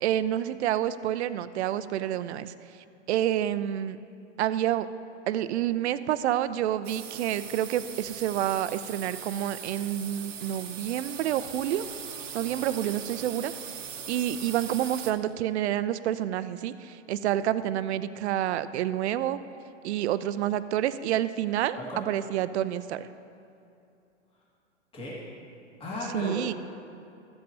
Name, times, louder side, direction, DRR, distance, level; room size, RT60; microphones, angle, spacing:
voice 1, 0.0-2.5 3.1-4.0 4.4-4.9 5.3-11.9 12.3-13.5 14.1-19.4 19.8-23.1 26.1-26.5, right 11 dB, 65° right, 14 dB, 0.5 m, -28 dB
sound 1, 6.8-15.1, right 7 dB, 80° right, 0.9 m, -40 dB
voice 2, 25.8-26.5, left 1 dB, 15° left, -6 dB, 1.9 m, -35 dB
14.0 x 7.6 x 2.8 m, 2.6 s
hypercardioid pair, 120°, 37 cm